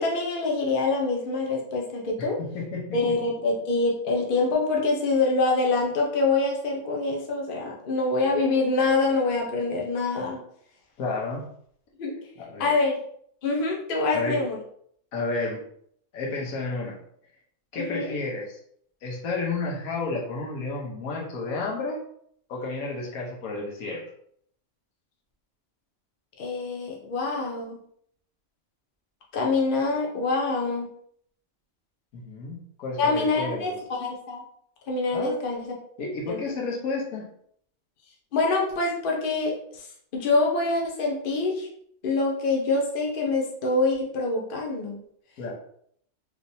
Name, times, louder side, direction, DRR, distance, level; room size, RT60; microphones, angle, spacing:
voice 1, 0.0-2.4 2.9-10.4 12.0-12.2 12.6-13.0 13.4-14.6 17.8-18.2 26.4-27.8 29.3-30.9 33.0-34.4 34.9-35.7 36.3-36.4 38.3-39.8 40.1-41.7 42.0-45.0, left 3 dB, 50° left, -1 dB, 0.8 m, -25 dB
voice 2, 2.2-3.2 11.0-11.4 12.4-12.7 14.1-14.4 15.1-15.6 16.1-17.0 17.7-18.6 19.0-22.0 22.5-24.0 32.1-33.8 35.1-35.4 36.0-37.3 45.4-45.5, left 3 dB, 85° left, -2 dB, 1.4 m, -31 dB
3.4 x 2.9 x 2.7 m, 0.66 s
omnidirectional pair, 1.5 m